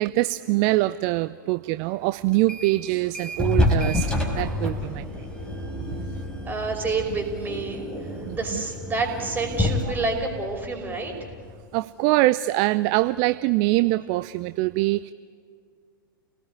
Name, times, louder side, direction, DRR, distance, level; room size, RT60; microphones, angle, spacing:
voice 1, 0.0-5.3 8.3-8.6 11.7-15.1, right 18 dB, 40° right, 14 dB, 0.6 m, -24 dB
sound 1, 2.3-2.8 3.1-11.6, left 1 dB, 10° left, 4.8 m, -28 dB
voice 2, 6.5-7.8 8.3-11.1, right 3 dB, 15° right, 2 dB, 5.4 m, -28 dB
29.0 x 18.5 x 9.7 m, 2.1 s
figure-of-eight pair, 100°, 12 cm